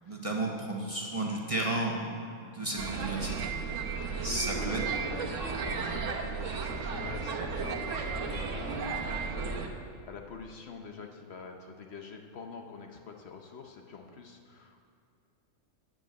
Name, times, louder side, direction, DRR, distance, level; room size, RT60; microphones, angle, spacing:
voice 1, 0.0-3.6 4.2-4.8, right 2 dB, 30° right, -1 dB, 0.8 m, -33 dB
sound 1, 2.8-9.7, right 4 dB, 75° right, 1.2 m, -34 dB
voice 2, 4.0-9.3 10.0-14.8, left 5 dB, 60° left, 4 dB, 0.9 m, -46 dB
9.0 x 5.3 x 7.5 m, 2.5 s
omnidirectional pair, 1.3 m